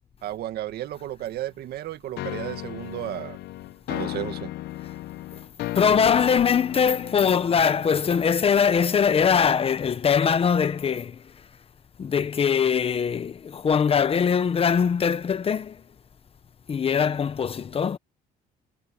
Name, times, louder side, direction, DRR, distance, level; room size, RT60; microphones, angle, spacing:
voice 1, 0.2-3.4 3.9-4.5, right 13 dB, 70° right, 1.9 m, -33 dB
sound 1, 2.2-9.0, left 15 dB, 75° left, 0.9 m, -36 dB
voice 2, 5.7-11.2 12.0-15.8 16.7-18.0, left 7 dB, 35° left, 1.1 m, -22 dB
cardioid pair, 110°, 17 cm